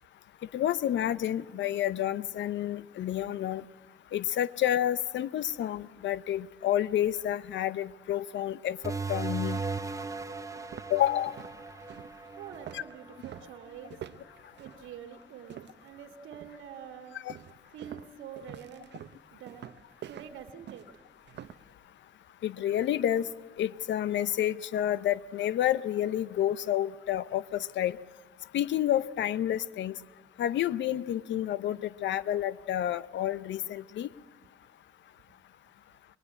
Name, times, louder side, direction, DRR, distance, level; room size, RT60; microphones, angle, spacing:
voice 1, 0.5-3.6 4.1-9.6 10.9-11.4 12.7-12.8 17.2-17.3 22.4-23.3 23.6-28.0 28.5-30.0 30.4-34.1, left 11 dB, 65° left, 18 dB, 0.7 m, -29 dB
sound 1, 8.8-14.0, right 4 dB, 15° right, 1.1 m, -37 dB
sound 2, 9.9-10.0 10.5-16.0 16.3-16.7 17.3-21.7, right 10 dB, 60° right, 0.7 m, -47 dB
voice 2, 12.4-14.0 14.6-17.2 17.7-18.9 19.3-20.9, right 8 dB, 80° right, 4 dB, 1.7 m, -46 dB
22.5 x 21.0 x 9.8 m, 1.5 s
cardioid pair, 90°, 20 cm